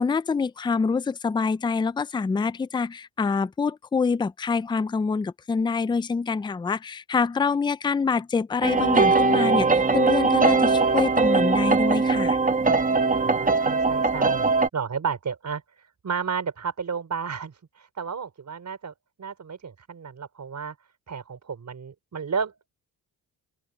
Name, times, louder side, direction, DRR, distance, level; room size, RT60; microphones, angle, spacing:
voice 1, 0.0-12.4, left 5 dB, 10° left, 0.4 m, -26 dB
sound 1, 8.6-14.7, right 4 dB, 20° right, 1.2 m, -21 dB
voice 2, 13.1-20.7 21.1-22.7, right 6 dB, 45° right, 4.6 m, -33 dB
cardioid pair, 100°, 41 cm